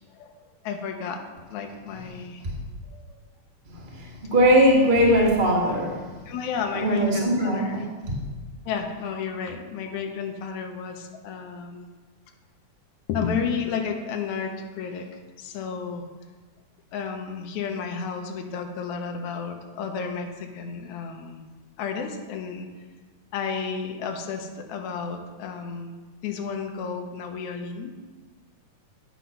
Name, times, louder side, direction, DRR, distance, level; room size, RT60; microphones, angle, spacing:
voice 1, 0.2-2.4 3.1-3.3 6.3-7.9 8.7-11.9 13.1-16.0 16.9-21.4 21.8-22.7 23.3-25.9 26.2-27.9, left 6 dB, 70° left, 3 dB, 2.2 m, -32 dB
voice 2, 3.8-6.1 6.7-7.8, equal, 30° right, -3 dB, 0.9 m, -20 dB
9.8 x 5.8 x 5.7 m, 1.4 s
omnidirectional pair, 3.7 m